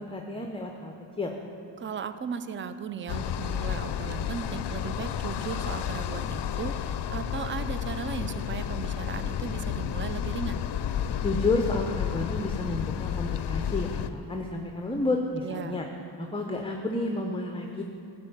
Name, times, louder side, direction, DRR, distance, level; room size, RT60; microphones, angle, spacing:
voice 1, 0.0-1.3 11.2-15.9 16.2-17.8, left 2 dB, 10° left, 3 dB, 0.6 m, -30 dB
voice 2, 1.8-10.6 15.4-15.8, right 7 dB, 25° right, 11 dB, 0.4 m, -36 dB
sound 1, 3.1-14.1, left 9 dB, 60° left, 0.5 m, -31 dB
12.0 x 4.2 x 7.9 m, 2.8 s
cardioid pair, 65°, 49 cm